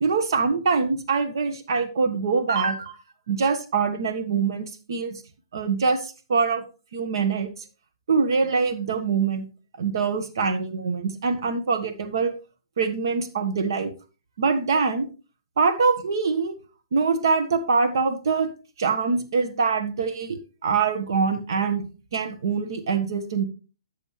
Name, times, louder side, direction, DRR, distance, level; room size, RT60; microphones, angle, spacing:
voice 1, 0.0-3.0 3.3-5.2 5.5-6.6 6.9-7.5 8.1-9.5 9.8-12.3 12.8-13.9 14.4-15.1 15.6-16.5 16.9-18.5 18.8-21.9 22.1-23.4, right 5 dB, 65° right, 8 dB, 1.4 m, -24 dB
11.0 x 7.0 x 3.2 m, 0.34 s
hypercardioid pair, 140°, 2 cm